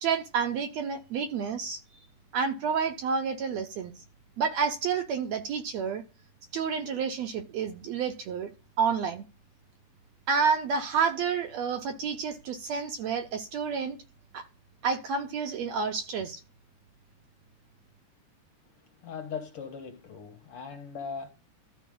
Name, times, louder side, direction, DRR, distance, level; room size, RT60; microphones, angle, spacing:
voice 1, 0.0-1.8 2.3-3.9 4.4-6.0 6.5-8.5 8.8-9.3 10.3-14.0 14.3-14.4 14.8-16.4, right 6 dB, 70° right, 1.8 m, -29 dB
voice 2, 19.0-21.3, left 6 dB, 55° left, 2.0 m, -39 dB
13.0 x 5.0 x 3.7 m
omnidirectional pair, 3.5 m